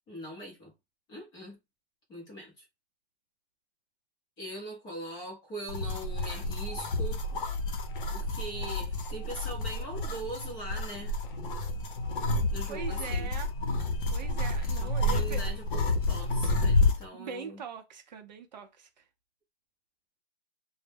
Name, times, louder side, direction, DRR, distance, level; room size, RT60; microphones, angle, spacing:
voice 1, 0.1-0.7 1.1-1.6 2.1-2.6 4.4-7.2 8.1-11.1 12.3-13.3 14.8-17.6, right 1 dB, 10° left, 0.6 m, -41 dB
sound 1, 5.7-17.1, left 2 dB, 50° left, 0.7 m, -30 dB
voice 2, 12.7-13.5 14.1-15.6 17.2-18.9, right 5 dB, 40° right, 0.5 m, -41 dB
2.1 x 2.0 x 3.3 m
hypercardioid pair, 150°, 34 cm